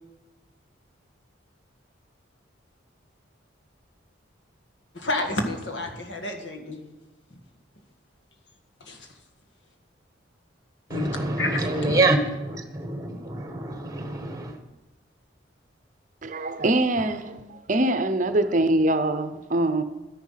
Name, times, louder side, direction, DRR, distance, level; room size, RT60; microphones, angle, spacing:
voice 1, 4.9-6.8 8.8-9.1 10.9-11.1 11.4-12.0, left 2 dB, 65° left, 4 dB, 1.8 m, -30 dB
voice 2, 10.9-14.6, right 2 dB, 20° right, 7 dB, 1.3 m, -26 dB
voice 3, 16.2-19.8, right 1 dB, 40° right, 10 dB, 0.7 m, -23 dB
12.5 x 10.5 x 5.7 m, 1.0 s
head